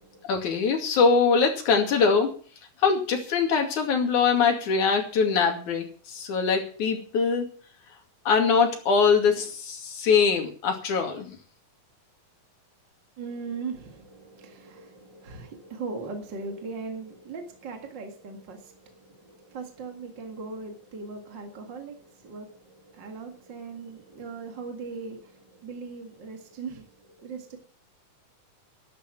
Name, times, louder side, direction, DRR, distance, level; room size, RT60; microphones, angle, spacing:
voice 1, 0.3-2.3 2.8-7.5 8.3-11.4, left 5 dB, 70° left, 3.9 m, -23 dB
voice 2, 13.2-27.6, right 4 dB, 40° right, 2.2 m, -39 dB
12.5 x 12.5 x 6.1 m
omnidirectional pair, 3.6 m